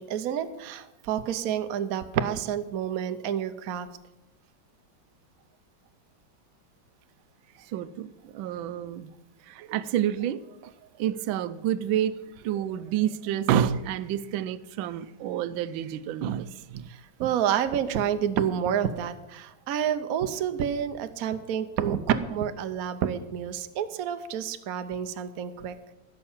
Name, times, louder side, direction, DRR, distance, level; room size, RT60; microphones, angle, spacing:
voice 1, 0.0-3.9 16.9-25.8, right 9 dB, 60° right, 1.0 m, -29 dB
voice 2, 7.7-9.1 9.5-10.4 11.0-12.2 12.4-16.9, right 10 dB, 80° right, 1.4 m, -29 dB
15.5 x 6.7 x 7.3 m
omnidirectional pair, 2.2 m